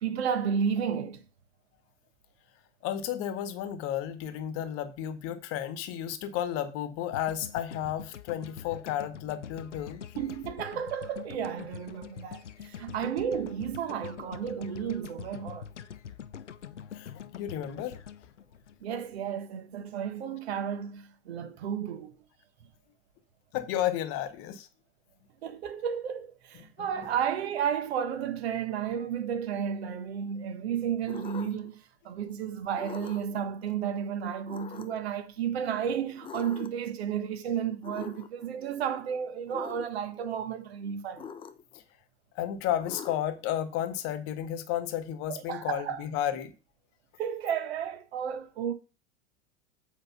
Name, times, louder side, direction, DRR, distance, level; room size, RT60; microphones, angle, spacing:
voice 1, 0.0-1.2 10.1-15.7 18.8-22.2 25.4-41.3 45.3-46.0 47.2-48.7, right 8 dB, 60° right, 1.4 m, -32 dB
voice 2, 2.8-10.1 16.9-18.0 23.5-24.7 26.8-27.1 41.7-41.8 42.3-46.5, left 11 dB, 40° left, 1.2 m, -32 dB
sound 1, 7.1-19.3, left 8 dB, 75° left, 0.7 m, -44 dB
sound 2, 31.1-31.7 32.7-33.4 34.5-35.1 36.2-36.9 37.8-38.5 39.5-39.9 41.2-41.8 42.8-43.5, left 7 dB, 15° left, 0.6 m, -43 dB
8.1 x 5.2 x 5.6 m
figure-of-eight pair, 90°, 36 cm